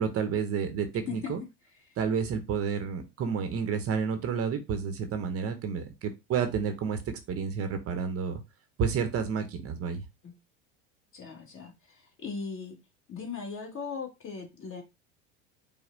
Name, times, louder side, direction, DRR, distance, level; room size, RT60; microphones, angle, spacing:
voice 1, 0.0-1.4 2.0-7.0 7.3-8.4 8.8-10.0, right 6 dB, 40° right, 0.9 m, -30 dB
voice 2, 11.1-12.8 13.1-14.8, left 5 dB, 35° left, 2.0 m, -38 dB
5.4 x 2.2 x 3.8 m
hypercardioid pair, 90°, 37 cm